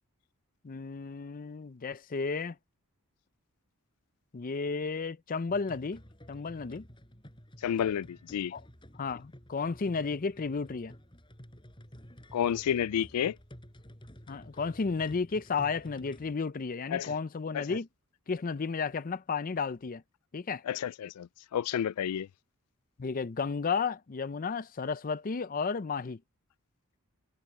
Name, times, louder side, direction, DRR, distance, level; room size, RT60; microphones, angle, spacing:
voice 1, 0.6-2.6 4.3-6.0 6.3-6.8 8.5-8.6 9.0-10.9 14.3-17.9 18.3-20.0 20.3-20.6 23.0-26.2, left 4 dB, 40° left, 0.5 m, -33 dB
sound 1, 5.5-16.4, equal, 20° left, 6.0 m, -52 dB
voice 2, 7.6-8.5 12.3-13.4 16.9-17.1 17.5-17.8 20.7-22.3, left 9 dB, 90° left, 0.3 m, -30 dB
head